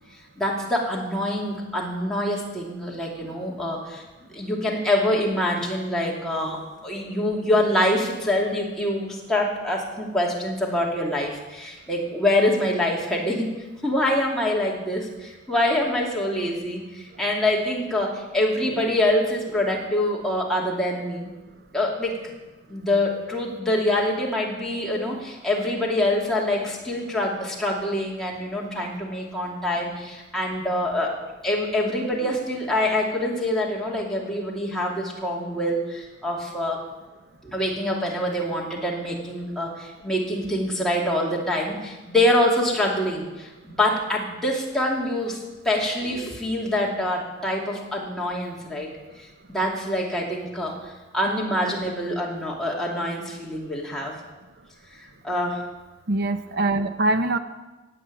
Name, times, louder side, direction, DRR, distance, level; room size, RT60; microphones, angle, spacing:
voice 1, 0.4-4.0 4.3-13.5 13.8-21.3 21.7-22.2 22.7-36.8 37.4-48.9 49.2-54.2 55.2-55.6, left 1 dB, 5° left, -4 dB, 2.8 m, -25 dB
voice 2, 56.1-57.4, right 2 dB, 50° right, 9 dB, 0.8 m, -23 dB
17.5 x 7.6 x 8.6 m, 1.2 s
head